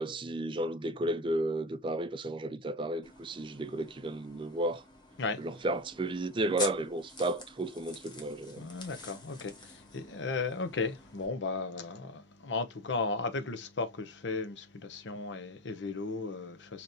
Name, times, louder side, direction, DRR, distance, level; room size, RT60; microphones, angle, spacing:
voice 1, 0.0-4.8 5.4-8.7, right 1 dB, 25° right, 0.4 m, -33 dB
sound 1, 3.0-11.3, left 3 dB, 25° left, 1.1 m, -46 dB
voice 2, 8.6-16.8, left 3 dB, 75° left, 0.7 m, -35 dB
5.1 x 2.9 x 2.6 m
head